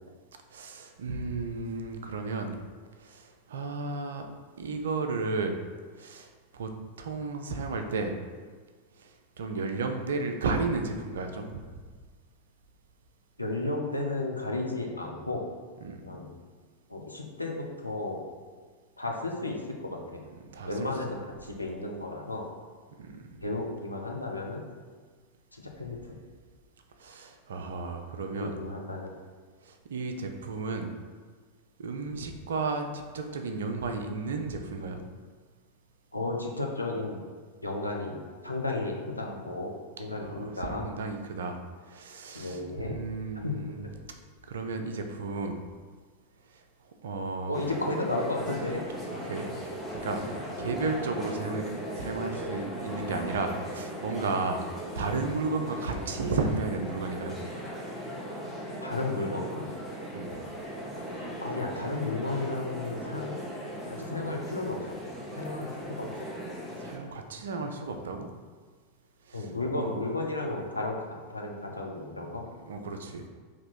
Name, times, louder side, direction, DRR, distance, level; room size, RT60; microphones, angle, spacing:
voice 1, 0.5-2.6 3.0-4.3 4.6-5.6 6.0-6.7 7.0-8.2 9.0-9.1 9.4-11.6 15.8-16.0 20.5-20.9 23.0-23.4 27.0-28.6 29.6-30.9 31.8-35.0 40.2-41.6 41.9-43.9 44.5-45.6 47.0-47.6 49.1-49.5 50.0-50.2 50.6-51.7 51.9-54.6 55.0-57.4 60.1-60.3 66.8-68.3 69.3-69.9 72.7-73.2, right 3 dB, 65° right, 5 dB, 0.5 m, -33 dB
voice 2, 13.4-15.4 16.0-16.3 16.9-18.2 19.0-19.6 19.8-20.2 20.7-22.4 23.4-24.6 25.6-26.2 28.4-29.1 36.1-37.2 37.6-39.7 40.0-40.8 42.3-43.0 43.4-44.0 47.5-48.9 58.8-59.7 61.4-63.4 63.9-64.8 65.4-66.1 69.3-71.0 71.3-72.4, left 2 dB, 85° left, 0 dB, 0.6 m, -33 dB
sound 1, 47.5-67.0, equal, ahead, 1.0 m, -38 dB
4.2 x 2.9 x 4.2 m, 1.5 s
figure-of-eight pair, 90°, 0 cm